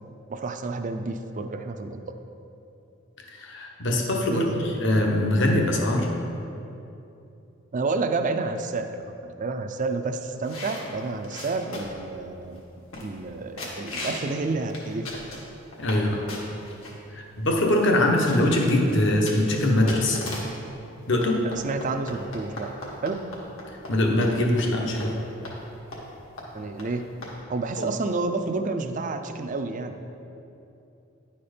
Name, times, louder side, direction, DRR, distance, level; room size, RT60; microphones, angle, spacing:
voice 1, 0.3-2.2 4.3-4.6 7.7-12.6 13.0-15.1 18.0-18.1 21.4-22.7 23.0-23.3 26.5-27.1 27.5-30.1, right 3 dB, 40° right, 7 dB, 0.4 m, -30 dB
voice 2, 3.3-6.1 15.8-16.2 17.1-20.2 21.1-21.4 23.9-25.1 27.8-27.9, left 1 dB, 60° left, 1 dB, 1.0 m, -22 dB
sound 1, 10.4-12.1 12.6-12.7 12.9-13.3 13.6-14.3 14.7-16.0 16.3-16.9 17.5-17.6 17.8-20.6 21.2-23.9 24.2-24.3 24.6-24.7 25.0-25.1 25.4-25.6 25.9-26.1 26.4-26.5 26.8-26.9 27.2-27.3, left 2 dB, 80° left, 1.6 m, -37 dB
10.0 x 4.3 x 5.0 m, 2.8 s
head